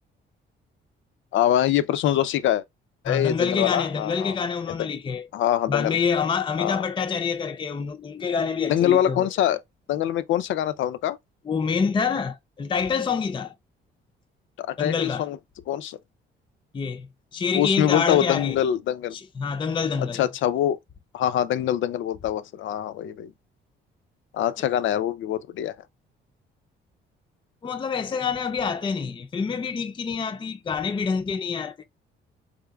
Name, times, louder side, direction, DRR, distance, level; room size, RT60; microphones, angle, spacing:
voice 1, 1.3-2.6 3.0-4.4 4.7-4.8 5.3-6.0 6.6-6.9 8.7-9.6 9.9-11.2 14.6-14.9 15.2-15.4 15.7-16.0 17.5-19.2 20.0-20.8 21.1-23.3 24.3-25.7, left 11 dB, 75° left, 0.5 m, -24 dB
voice 2, 3.1-5.3 5.7-9.3 11.5-13.5 14.8-15.3 16.7-18.6 19.1-20.2 27.6-31.8, left 5 dB, 25° left, 0.4 m, -27 dB
4.4 x 3.6 x 2.2 m
cardioid pair, 90°, 20 cm